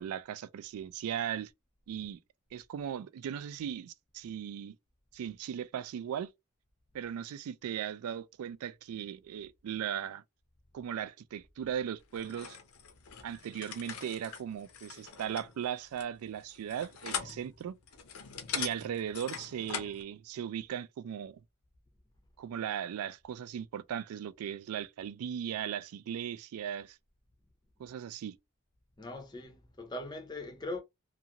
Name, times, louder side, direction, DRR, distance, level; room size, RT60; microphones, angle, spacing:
voice 1, 0.0-1.5 1.9-2.2 2.5-4.8 5.1-6.3 6.9-10.2 10.7-12.6 13.2-17.8 18.5-21.4 22.4-27.0 27.8-28.4, right 9 dB, 80° right, 0.3 m, -38 dB
sound 1, 12.1-20.0, left 7 dB, 75° left, 0.6 m, -42 dB
voice 2, 29.0-30.8, left 2 dB, 20° left, 0.5 m, -40 dB
2.5 x 2.4 x 2.8 m
head